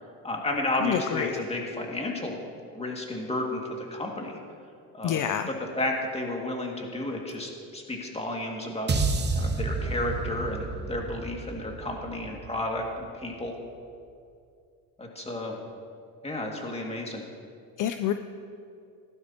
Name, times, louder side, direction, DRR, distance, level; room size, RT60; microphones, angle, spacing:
voice 1, 0.2-2.4 2.7-4.4 4.9-9.0 9.3-13.5 15.0-15.6 16.2-17.2, left 1 dB, 15° left, 0 dB, 2.2 m, -32 dB
voice 2, 0.8-1.4 5.0-5.5 17.8-18.1, left 10 dB, 50° left, 9 dB, 0.6 m, -27 dB
sound 1, 8.9-13.2, right 3 dB, 25° right, 1.1 m, -30 dB
16.0 x 12.0 x 2.9 m, 2.4 s
supercardioid pair, 90°, 40 cm